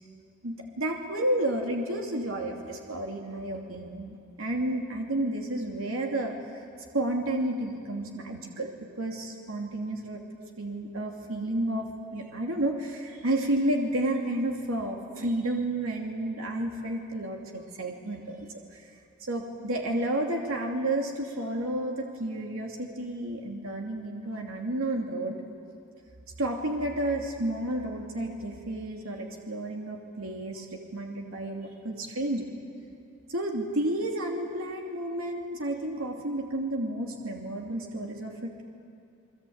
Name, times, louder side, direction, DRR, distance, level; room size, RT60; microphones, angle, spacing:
voice 1, 0.4-6.6 6.9-10.2 10.6-18.4 18.7-18.9 19.2-25.4 26.4-32.5 33.3-38.6, right 1 dB, 75° right, 1 dB, 2.8 m, -31 dB
30.0 x 21.5 x 8.8 m, 2.4 s
head